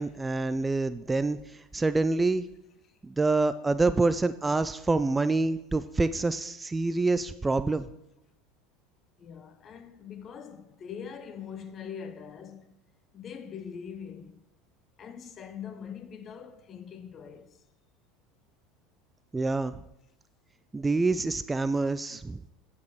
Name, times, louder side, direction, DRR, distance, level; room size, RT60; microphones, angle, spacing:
voice 1, 0.0-1.4 1.7-2.4 3.0-7.9 19.3-19.7 20.7-22.4, right 3 dB, 15° right, 0.3 m, -26 dB
voice 2, 9.2-12.7 13.1-14.4 15.0-17.5, left 7 dB, 40° left, 0.8 m, -42 dB
9.2 x 5.4 x 4.7 m
hypercardioid pair, 80°, 0 cm